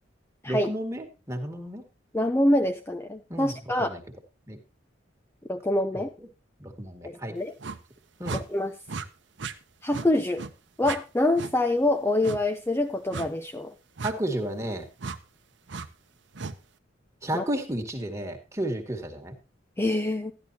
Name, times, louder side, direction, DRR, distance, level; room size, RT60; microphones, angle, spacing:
voice 1, 0.4-1.8 3.3-4.0 4.5-4.6 5.9-6.0 6.6-7.3 8.2-8.4 14.0-14.9 17.2-19.4, right 1 dB, 15° right, 2 dB, 1.8 m, -32 dB
voice 2, 2.1-4.0 5.5-6.1 7.0-7.5 8.3-8.7 9.8-10.4 10.8-13.7 17.3-17.4 19.8-20.3, left 1 dB, 15° left, 6 dB, 0.5 m, -25 dB
sound 1, 7.6-7.8 8.2-8.4 8.9-9.1 9.4-9.5 9.9-10.1 10.4-10.5 10.8-11.0 11.3-11.5 12.2-12.4 13.1-13.3 14.0-14.1 15.0-15.2 15.7-15.9 16.3-16.5, right 4 dB, 70° right, 0.8 m, -35 dB
13.0 x 11.0 x 2.8 m, 0.30 s
head